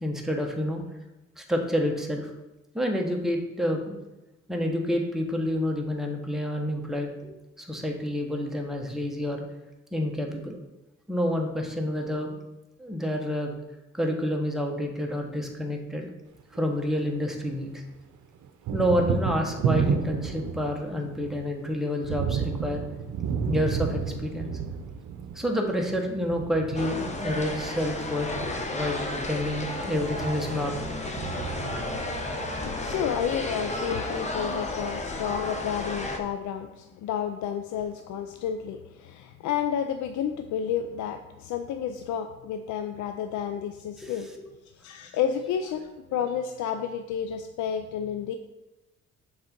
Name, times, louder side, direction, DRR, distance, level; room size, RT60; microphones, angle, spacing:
voice 1, 0.0-0.8 1.4-2.3 2.7-4.0 4.5-7.3 7.6-9.4 9.9-10.6 11.1-12.4 12.8-13.5 13.9-16.1 16.5-17.8 18.7-22.8 23.4-24.6 25.3-28.3 28.7-30.9 43.5-43.6 44.0-44.1, equal, ahead, 1 dB, 1.1 m, -28 dB
Thunder, 16.4-17.6 17.9-33.1, right 6 dB, 70° right, 0.7 m, -32 dB
sound 1, 26.7-36.2, left 2 dB, 25° left, 0.9 m, -32 dB
voice 2, 32.6-44.3 44.7-48.4, left 8 dB, 75° left, 8 dB, 0.5 m, -31 dB
6.4 x 4.0 x 4.4 m, 1.0 s
cardioid pair, 90°, 30 cm